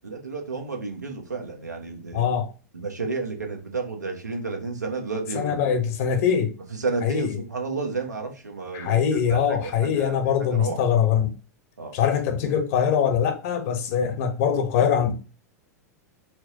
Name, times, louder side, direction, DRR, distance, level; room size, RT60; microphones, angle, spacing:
voice 1, 0.0-2.3 2.7-5.7 6.7-10.8 11.8-11.9, right 4 dB, 90° right, 0.9 m, -32 dB
voice 2, 2.1-2.5 5.3-6.5 7.0-7.3 8.7-11.3 11.9-15.1, left 8 dB, 55° left, 0.9 m, -22 dB
4.4 x 2.1 x 2.9 m
figure-of-eight pair, 95°, 9 cm